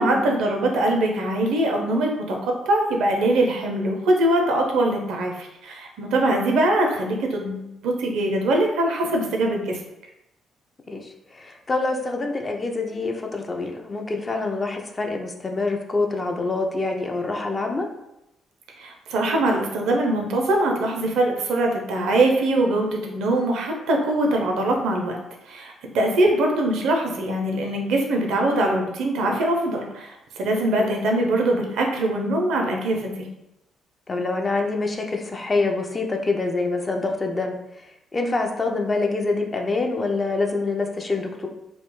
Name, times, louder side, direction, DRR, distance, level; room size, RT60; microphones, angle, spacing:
voice 1, 0.0-9.8 18.8-25.2 25.5-33.3, right 1 dB, 65° right, 2 dB, 0.4 m, -22 dB
voice 2, 10.9-17.9 30.8-31.0 34.1-37.8 38.1-41.5, left 3 dB, 30° left, 3 dB, 0.4 m, -26 dB
2.4 x 2.1 x 3.0 m, 0.88 s
figure-of-eight pair, 45°, 0 cm